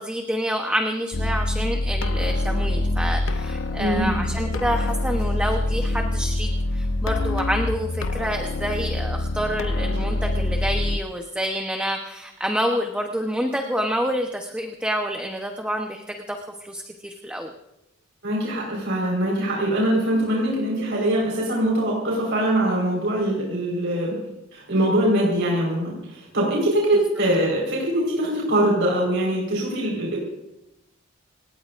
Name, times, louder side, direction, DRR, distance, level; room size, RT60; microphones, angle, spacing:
voice 1, 0.0-16.4 16.6-17.5, equal, 5° right, 2 dB, 1.0 m, -28 dB
sound 1, 1.1-11.0, left 2 dB, 85° left, 0.9 m, -25 dB
voice 2, 3.8-4.1 18.2-24.2 24.5-30.2, right 1 dB, 65° right, -3 dB, 4.7 m, -23 dB
28.0 x 17.5 x 2.6 m, 0.91 s
head